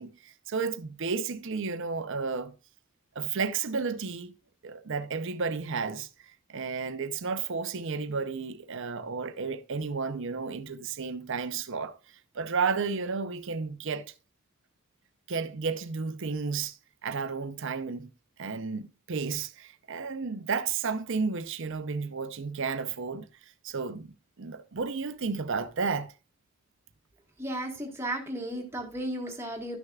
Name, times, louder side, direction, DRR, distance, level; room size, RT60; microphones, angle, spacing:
voice 1, 0.0-2.5 3.2-4.3 4.6-6.1 6.5-12.0 12.3-14.1 15.3-16.8 17.0-18.1 18.4-23.3 23.6-26.1, right 5 dB, 60° right, 0.7 m, -32 dB
voice 2, 27.4-29.8, right 1 dB, 10° right, 1.6 m, -34 dB
13.0 x 6.5 x 2.4 m
head